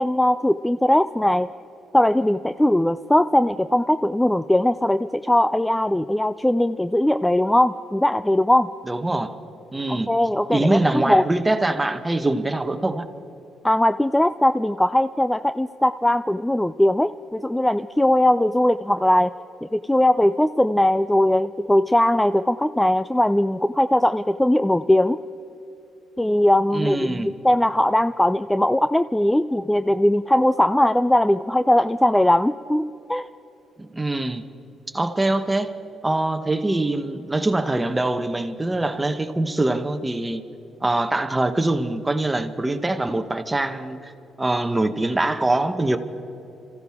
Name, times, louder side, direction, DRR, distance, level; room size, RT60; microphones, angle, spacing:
voice 1, 0.0-1.5 1.9-8.7 9.9-11.2 13.6-19.3 19.6-25.2 26.2-33.3, left 1 dB, 5° left, 11 dB, 0.3 m, -20 dB
voice 2, 8.9-9.4 9.7-10.1 10.5-13.1 26.7-27.3 33.8-34.4 34.9-35.7 36.0-40.4 40.8-44.1 44.4-46.0, right 2 dB, 15° right, 8 dB, 1.0 m, -23 dB
26.5 x 15.0 x 3.6 m, 3.0 s
cardioid pair, 90°, 0 cm